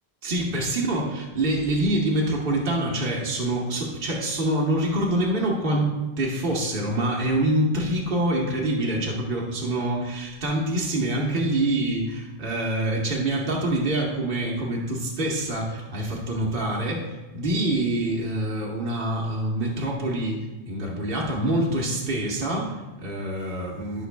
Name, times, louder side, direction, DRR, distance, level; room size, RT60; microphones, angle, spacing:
voice 1, 0.2-5.9 6.2-20.4 20.7-24.1, right 1 dB, 55° right, -3 dB, 1.3 m, -25 dB
11.5 x 5.9 x 2.3 m, 1.2 s
omnidirectional pair, 1.1 m